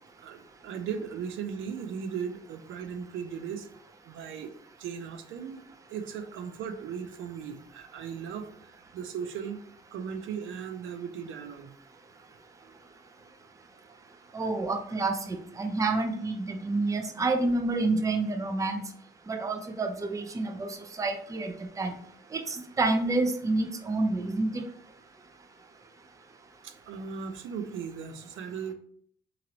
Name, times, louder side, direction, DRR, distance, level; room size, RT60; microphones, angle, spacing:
voice 1, 0.2-3.7 4.1-4.5 4.8-5.6 5.9-9.6 9.9-11.7 26.6-28.7, right 7 dB, 80° right, 7 dB, 0.4 m, -37 dB
voice 2, 14.3-18.8 19.3-21.5 21.8-21.9 22.3-24.6, right 2 dB, 15° right, 5 dB, 0.4 m, -28 dB
3.0 x 2.5 x 2.9 m, 0.63 s
cardioid pair, 90°, 20 cm